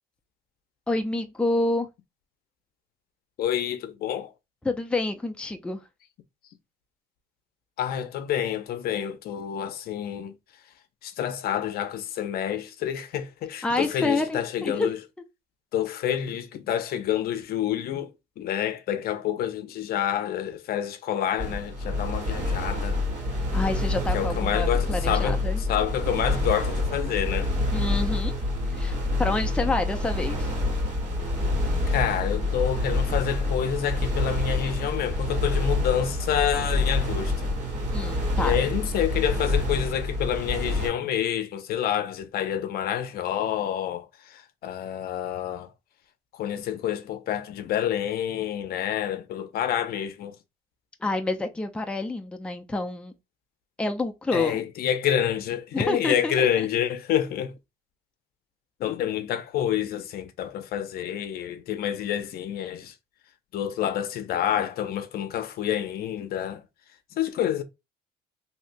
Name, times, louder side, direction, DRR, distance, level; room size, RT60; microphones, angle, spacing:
voice 1, 0.9-1.9 4.6-5.8 13.6-14.9 23.5-25.6 27.7-28.3 28.7-30.5 37.9-38.6 51.0-53.1 53.8-54.6 55.7-56.5, left 2 dB, 5° left, 0.5 m, -28 dB
voice 2, 3.4-4.3 7.8-10.3 11.0-15.0 15.7-18.1 18.4-23.0 24.1-27.5 31.9-37.5 38.4-45.7 46.3-50.3 54.3-57.5 58.8-62.9 63.5-66.6 67.2-67.6, left 10 dB, 65° left, 0.6 m, -28 dB
sound 1, 21.4-40.9, left 2 dB, 45° right, 1.7 m, -27 dB
3.2 x 2.8 x 2.6 m
cardioid pair, 110°, 17 cm